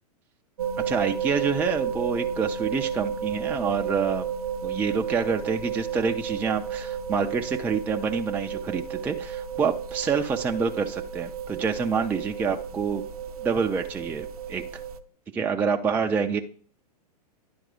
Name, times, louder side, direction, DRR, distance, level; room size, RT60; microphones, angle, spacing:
sound 1, 0.6-15.0, right 7 dB, 65° right, 0.6 m, -32 dB
voice 1, 0.9-4.3 4.6-13.0 13.4-14.6 15.3-16.4, right 5 dB, 10° right, 4 dB, 0.3 m, -27 dB
10.5 x 4.6 x 3.8 m, 0.43 s
figure-of-eight pair, 105°, 21 cm